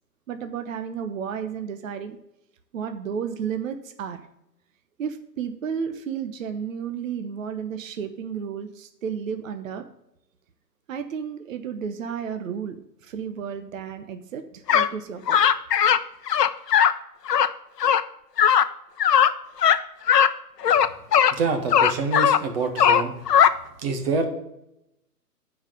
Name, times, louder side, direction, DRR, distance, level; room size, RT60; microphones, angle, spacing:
voice 1, 0.3-2.2 2.7-4.3 5.0-9.8 10.9-15.4, right 7 dB, 50° right, 8 dB, 1.0 m, -32 dB
sound 1, 14.7-14.9 15.3-16.0 16.3-16.9 17.3-17.5 17.8-18.0 18.4-18.7 19.0-19.3 19.6-19.8 20.1-20.3 20.6-21.3 21.7-22.4 22.8-23.5, left 9 dB, 75° left, 0.8 m, -18 dB
voice 2, 21.3-23.1 23.8-24.3, right 4 dB, 35° right, 6 dB, 1.7 m, -26 dB
8.8 x 4.9 x 7.6 m, 0.84 s
hypercardioid pair, 135°, 49 cm